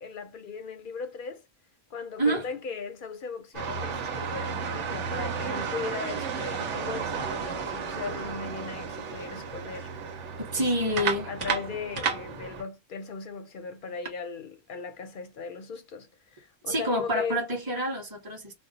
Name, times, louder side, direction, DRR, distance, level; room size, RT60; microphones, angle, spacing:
voice 1, 0.0-1.4 1.9-9.9 10.6-11.0 11.3-17.4, left 5 dB, 55° left, 0.6 m, -38 dB
sound 1, 3.5-12.6, right 6 dB, 80° right, 1.1 m, -33 dB
voice 2, 10.4-11.3 16.7-18.5, equal, 20° right, 1.0 m, -27 dB
2.5 x 2.0 x 3.8 m
omnidirectional pair, 1.2 m